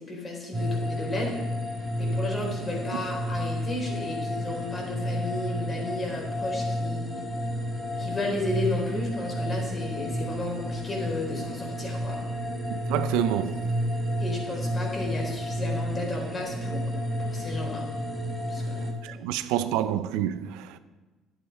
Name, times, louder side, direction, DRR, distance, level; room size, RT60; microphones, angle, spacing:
voice 1, 0.1-1.3 2.0-7.2 8.0-12.2 14.2-17.8 18.5-18.8 19.6-19.7, left 2 dB, 30° left, 4.2 m, -33 dB
sound 1, 0.5-18.9, equal, 5° left, 3.6 m, -31 dB
voice 2, 12.9-13.6 19.0-20.7, right 11 dB, 85° right, 0.6 m, -27 dB
11.0 x 8.1 x 5.6 m
supercardioid pair, 95°, 0 cm